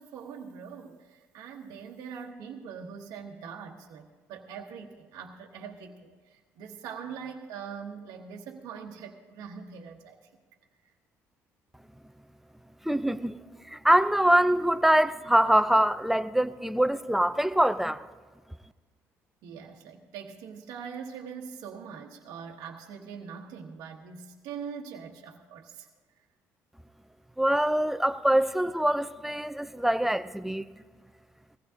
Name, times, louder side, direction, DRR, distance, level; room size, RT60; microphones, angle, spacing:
voice 1, 0.0-10.2 19.4-25.9, right 6 dB, 75° right, 1.1 m, -42 dB
voice 2, 12.8-13.4 13.7-18.1 27.4-30.7, right 1 dB, 5° right, 0.6 m, -24 dB
19.0 x 15.5 x 2.8 m
supercardioid pair, 65°, 6 cm